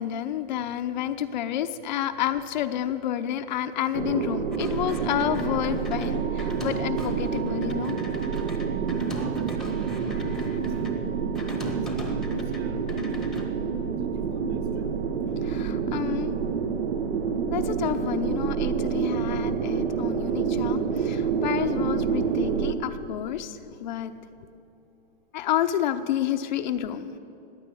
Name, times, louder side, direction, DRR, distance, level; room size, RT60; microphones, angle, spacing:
voice 1, 0.0-8.0 15.4-16.4 17.5-24.1 25.3-27.2, left 11 dB, 45° left, 8 dB, 0.7 m, -29 dB
sound 1, 3.9-22.7, right 6 dB, 70° right, 1.4 m, -28 dB
sound 2, 4.5-10.9 11.3-12.6 12.9-13.4, left 2 dB, ahead, 1.0 m, -42 dB
sound 3, 6.0-20.1, right 6 dB, 75° left, 1.2 m, -47 dB
voice 2, 8.7-13.2 14.0-14.9, right 4 dB, 40° right, 6 dB, 1.7 m, -42 dB
15.5 x 9.8 x 9.1 m, 2.8 s
hypercardioid pair, 155°, 31 cm